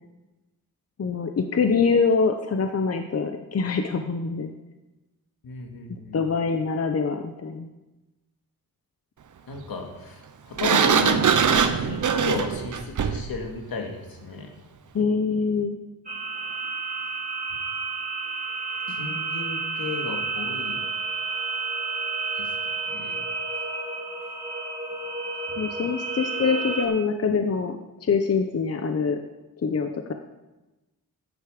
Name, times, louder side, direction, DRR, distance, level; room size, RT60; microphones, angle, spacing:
voice 1, 1.0-4.5 6.1-7.7 14.9-15.8 18.9-19.2 25.6-29.2 29.6-30.1, left 5 dB, 40° left, 6 dB, 0.9 m, -24 dB
voice 2, 5.4-6.2 9.5-14.5 18.9-20.8 22.3-22.5 22.9-23.2 25.5-25.6, left 4 dB, 70° left, 2 dB, 2.3 m, -34 dB
Sliding door, 10.6-13.3, right 7 dB, 55° right, 0.9 m, -22 dB
sound 1, 16.1-26.9, right 4 dB, 25° right, 4.4 m, -31 dB
13.5 x 10.0 x 5.1 m, 1.1 s
wide cardioid pair, 110°, 36 cm